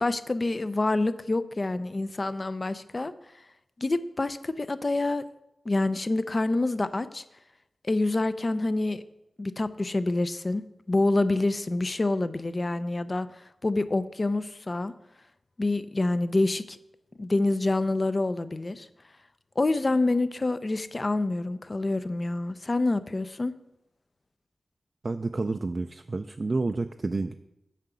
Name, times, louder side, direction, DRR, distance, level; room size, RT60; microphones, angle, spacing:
voice 1, 0.0-3.1 3.8-5.2 5.7-7.2 7.8-9.0 9.4-14.9 15.6-16.8 17.2-18.9 19.6-23.5, left 2 dB, 40° left, 13 dB, 0.5 m, -27 dB
voice 2, 25.0-27.3, right 3 dB, 45° right, 7 dB, 0.3 m, -29 dB
7.5 x 4.9 x 6.8 m, 0.89 s
cardioid pair, 60°, 0 cm